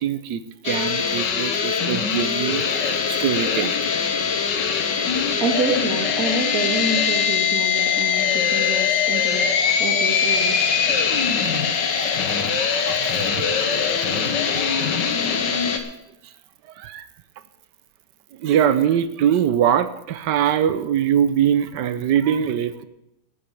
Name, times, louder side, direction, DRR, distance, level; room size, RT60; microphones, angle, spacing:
voice 1, 0.0-3.8 12.0-12.1 12.9-14.0 14.5-15.3 16.2-16.3 16.7-17.1 18.3-22.9, right 9 dB, 85° right, 13 dB, 1.4 m, -23 dB
sound 1, 0.6-15.8, left 6 dB, 85° left, 1.9 m, -22 dB
voice 2, 5.4-10.7, right 3 dB, 55° right, -2 dB, 2.8 m, -27 dB
13.0 x 7.7 x 7.9 m, 0.89 s
omnidirectional pair, 1.8 m